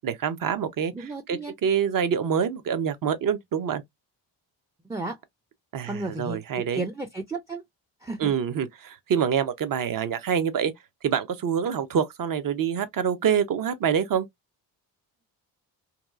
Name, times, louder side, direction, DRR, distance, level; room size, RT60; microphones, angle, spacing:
voice 1, 0.0-3.8 5.7-6.8 8.2-10.7 11.0-14.3, right 8 dB, 45° right, 0.7 m, -26 dB
voice 2, 0.9-1.5 4.9-5.2 5.9-7.6 8.0-8.3, right 2 dB, 10° right, 0.4 m, -33 dB
2.8 x 2.2 x 2.4 m
supercardioid pair, 60°, 47 cm